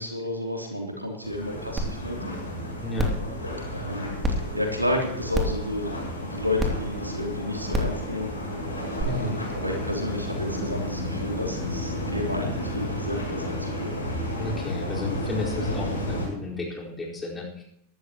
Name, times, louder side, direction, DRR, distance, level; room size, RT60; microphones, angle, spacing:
voice 1, 0.0-2.1 3.7-4.2 4.5-8.3 9.0-14.0, left 1 dB, 85° right, 1 dB, 3.3 m, -31 dB
sound 1, 1.2-16.3, left 1 dB, 85° left, 7.4 m, -32 dB
sound 2, 1.8-1.9 2.3-2.4 3.0-3.2 4.2-4.3 5.3-5.6 6.6-6.7 7.7-7.9 9.0-9.1, equal, 15° right, 2.8 m, -25 dB
voice 2, 2.8-3.1 9.1-9.4 14.4-17.6, left 2 dB, 15° left, -3 dB, 4.7 m, -32 dB
23.0 x 12.0 x 3.1 m, 0.75 s
figure-of-eight pair, 90°, 0 cm